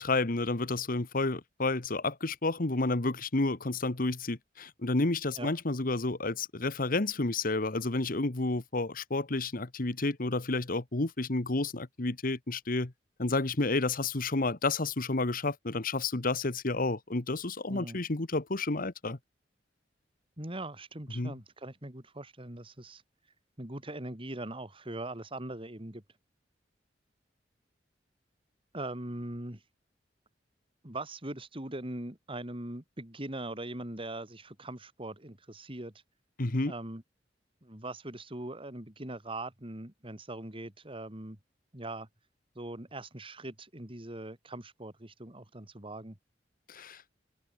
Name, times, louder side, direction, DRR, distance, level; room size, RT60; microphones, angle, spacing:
voice 1, 0.0-12.9 13.2-19.2 21.1-21.3 36.4-36.7 46.7-47.0, left 2 dB, 50° left, 1.4 m, -30 dB
voice 2, 17.7-18.0 20.4-23.0 23.6-26.0 28.7-29.6 30.8-35.9 36.6-37.0 37.6-41.4 41.7-42.1 42.5-46.2, right 1 dB, 30° right, 3.1 m, -41 dB
head